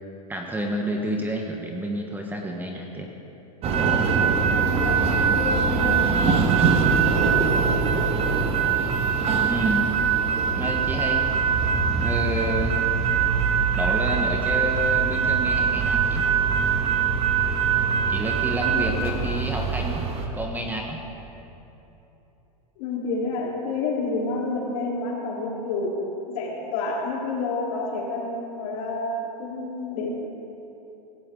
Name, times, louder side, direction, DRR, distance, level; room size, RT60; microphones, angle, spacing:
voice 1, 0.3-3.1 9.5-9.9 10.6-11.2 12.0-12.8 13.7-16.3 18.1-20.1 20.3-21.0, right 1 dB, 10° right, 1 dB, 1.3 m, -29 dB
sound 1, 3.6-20.3, right 6 dB, 30° right, 1.7 m, -22 dB
voice 2, 4.5-6.5 18.7-19.1 22.8-26.0 26.3-30.1, left 3 dB, 55° left, -2 dB, 3.7 m, -29 dB
18.5 x 16.0 x 3.9 m, 3.0 s
hypercardioid pair, 130°, 20 cm